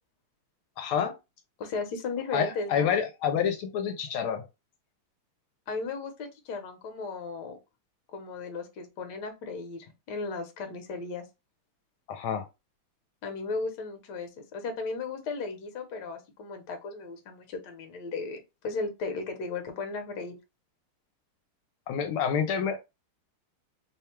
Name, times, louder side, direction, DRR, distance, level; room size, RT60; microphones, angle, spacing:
voice 1, 0.8-1.1 2.3-4.5 12.1-12.4 21.9-22.8, left 7 dB, 80° left, 1.4 m, -28 dB
voice 2, 1.6-2.9 5.7-7.6 8.1-11.2 13.2-18.4 18.6-20.3, left 4 dB, 60° left, 1.3 m, -35 dB
3.5 x 2.2 x 4.3 m
omnidirectional pair, 2.4 m